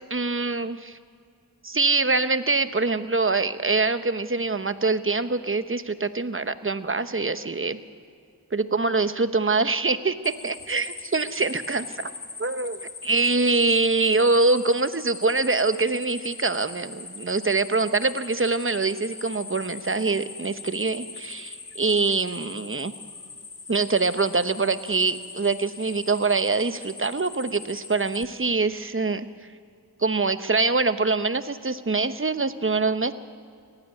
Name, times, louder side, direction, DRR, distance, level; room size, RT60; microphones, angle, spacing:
voice 1, 0.1-1.0 1.6-7.8 8.5-12.1 12.4-22.9 23.7-29.3 30.0-33.1, right 3 dB, 35° right, 11 dB, 1.0 m, -24 dB
sound 1, 10.2-28.2, left 4 dB, 90° left, 1.7 m, -41 dB
18.5 x 15.5 x 9.5 m, 2.3 s
cardioid pair, 40°, 38 cm